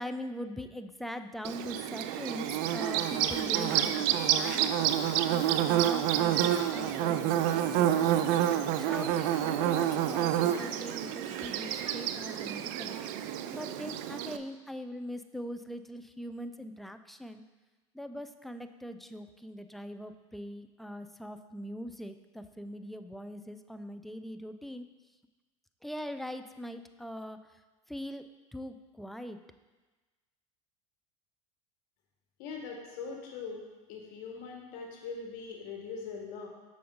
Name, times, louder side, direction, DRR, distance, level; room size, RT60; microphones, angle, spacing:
voice 1, 0.0-4.0 4.3-4.8 5.3-8.0 8.8-13.0 13.5-17.4 17.9-24.9 25.8-27.4 27.9-28.2 28.5-29.4, equal, ahead, 9 dB, 0.4 m, -41 dB
Bird / Buzz, 1.4-14.4, right 11 dB, 60° right, 0.4 m, -29 dB
Guitar, 2.6-7.0 7.4-12.0, left 1 dB, 15° left, 1.3 m, -52 dB
voice 2, 32.4-33.6 33.9-36.5, left 5 dB, 60° left, 0 dB, 1.4 m, -41 dB
6.7 x 5.2 x 3.9 m, 1.2 s
hypercardioid pair, 95°, 16 cm